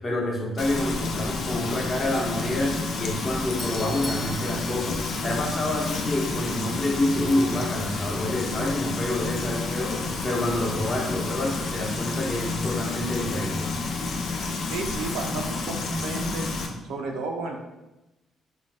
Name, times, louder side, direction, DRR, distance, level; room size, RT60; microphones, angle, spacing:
voice 1, 0.0-13.7, left 1 dB, 35° left, -2 dB, 0.8 m, -28 dB
Frying (food), 0.6-16.7, left 3 dB, 65° left, 0.4 m, -30 dB
Doorbell, 3.5-6.0, left 1 dB, 5° left, 0.6 m, -40 dB
voice 2, 14.7-16.5 16.8-17.6, right 3 dB, 90° right, 2 dB, 0.4 m, -32 dB
2.5 x 2.1 x 3.2 m, 0.99 s
cardioid pair, 90°, 0 cm